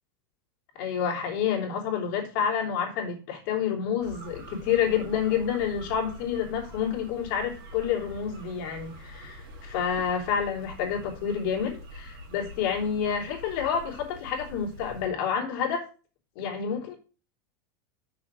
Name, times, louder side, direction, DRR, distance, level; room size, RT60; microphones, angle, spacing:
voice 1, 0.7-15.8 16.3-16.9, left 7 dB, 55° left, 0 dB, 3.5 m, -29 dB
sound 1, 4.0-15.1, equal, 40° right, 3.2 m, -45 dB
6.3 x 6.2 x 6.0 m, 0.36 s
supercardioid pair, 150°, 12 cm